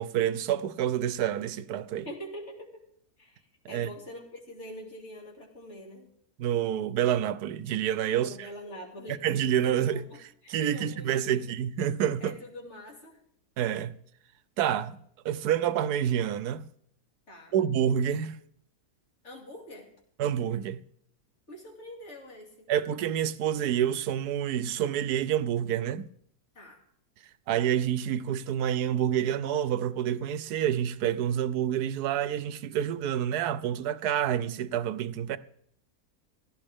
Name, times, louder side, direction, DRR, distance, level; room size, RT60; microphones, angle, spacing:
voice 1, 0.0-2.1 3.7-3.9 6.4-8.5 9.1-10.0 10.5-12.4 13.6-14.0 14.6-15.0 15.2-16.7 17.5-18.4 20.2-20.8 22.7-26.1 27.5-35.4, right 10 dB, 80° right, 1.2 m, -28 dB
voice 2, 2.0-2.7 3.2-6.1 8.1-9.2 9.6-11.4 12.2-13.2 17.3-17.5 19.2-19.9 21.5-22.7 26.5-26.8, equal, 45° left, 2.9 m, -44 dB
16.5 x 15.0 x 3.6 m
omnidirectional pair, 1.7 m